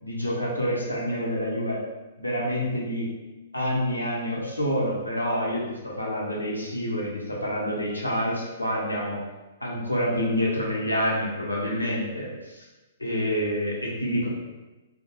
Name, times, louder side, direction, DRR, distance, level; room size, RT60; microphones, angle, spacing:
voice 1, 0.0-1.8 2.2-3.1 3.5-9.2 9.6-12.6 13.0-14.3, equal, 85° left, -4 dB, 0.7 m, -27 dB
2.3 x 2.1 x 2.9 m, 1.1 s
figure-of-eight pair, 115°, 0 cm